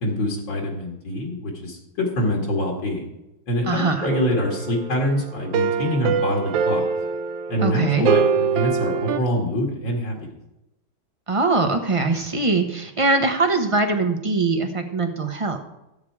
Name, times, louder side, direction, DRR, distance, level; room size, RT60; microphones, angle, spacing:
voice 1, 0.0-3.0 3.5-6.8 7.5-10.3, left 1 dB, 70° left, -1 dB, 2.9 m, -25 dB
voice 2, 3.6-4.1 7.6-8.1 11.3-15.6, right 3 dB, 30° right, 5 dB, 0.6 m, -22 dB
sound 1, 4.0-9.2, right 6 dB, 75° right, 1.4 m, -24 dB
14.0 x 8.5 x 4.8 m, 0.91 s
omnidirectional pair, 2.2 m